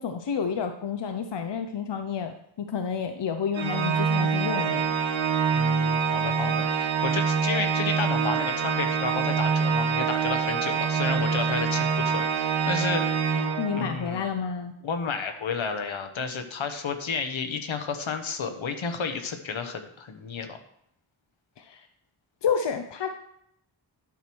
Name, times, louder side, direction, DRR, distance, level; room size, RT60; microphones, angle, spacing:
voice 1, 0.0-4.9 13.6-14.7 21.6-21.9 22.4-23.1, left 6 dB, 65° left, 7 dB, 0.7 m, -30 dB
Organ, 3.5-14.2, right 6 dB, 85° right, 0.9 m, -25 dB
voice 2, 5.5-13.2 13.7-14.2 14.8-20.6, left 5 dB, 80° left, 7 dB, 1.2 m, -32 dB
10.5 x 4.5 x 6.2 m, 0.72 s
wide cardioid pair, 105°, 47 cm